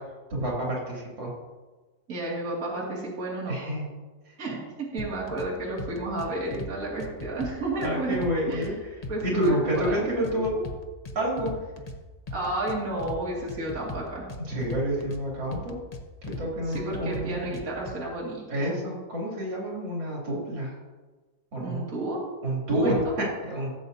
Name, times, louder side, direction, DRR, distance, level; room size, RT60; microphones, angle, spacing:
voice 1, 0.3-1.3 3.5-3.9 7.8-8.7 9.2-10.6 11.2-11.5 14.5-15.8 16.4-17.6 18.5-20.8 21.5-21.9 22.4-23.7, right 1 dB, 80° right, -4 dB, 3.6 m, -28 dB
voice 2, 2.1-3.5 4.4-4.6 4.9-8.2 8.5-8.7 9.1-10.0 12.3-14.2 16.7-18.6 21.6-22.2 22.8-23.1, right 2 dB, 50° right, -5 dB, 2.5 m, -31 dB
sound 1, 5.0-5.5 5.8-6.7 7.0-8.7 9.0-9.9 10.2-12.0 12.3-13.2 13.5-15.2 15.5-16.4 16.7-17.9, left 2 dB, 40° left, 0.6 m, -38 dB
17.0 x 8.0 x 2.7 m, 1.3 s
omnidirectional pair, 2.0 m